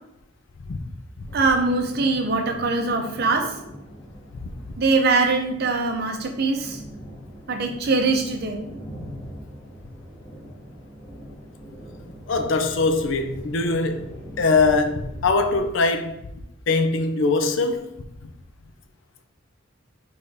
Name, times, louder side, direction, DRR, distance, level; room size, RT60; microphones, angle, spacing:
sound 1, 1.3-15.7, equal, 20° left, 1.0 m, -42 dB
voice 1, 1.3-3.5 4.8-6.8 7.5-8.7, right 3 dB, 50° right, 0.5 m, -22 dB
voice 2, 12.3-16.2 16.7-17.9, left 3 dB, 65° left, 0.4 m, -22 dB
3.7 x 3.4 x 2.7 m
head